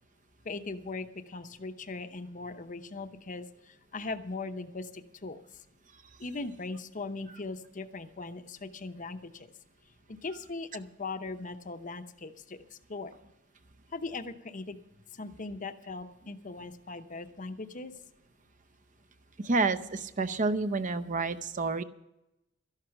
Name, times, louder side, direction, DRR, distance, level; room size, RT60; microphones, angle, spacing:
voice 1, 0.4-5.4 6.2-9.5 10.1-13.1 13.9-14.8 15.1-17.9, left 3 dB, 40° left, 9 dB, 0.8 m, -39 dB
voice 2, 19.4-21.8, right 3 dB, 40° right, 13 dB, 0.7 m, -29 dB
13.0 x 11.5 x 5.9 m, 0.89 s
head